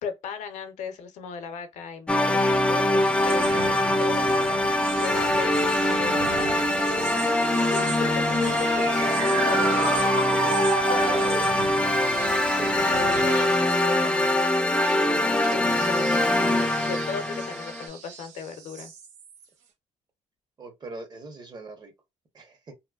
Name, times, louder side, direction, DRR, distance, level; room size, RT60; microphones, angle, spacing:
voice 1, 0.0-6.9 7.4-10.1 10.4-11.2 12.9-14.5 15.5-18.9, left 6 dB, 80° left, 0.7 m, -37 dB
sound 1, 2.1-17.9, left 1 dB, 10° left, 0.5 m, -23 dB
sound 2, 3.0-19.4, right 6 dB, 85° right, 0.6 m, -33 dB
voice 2, 20.6-21.9 22.3-22.7, right 3 dB, 35° right, 0.9 m, -41 dB
3.0 x 2.1 x 2.3 m
cardioid pair, 110°, 12 cm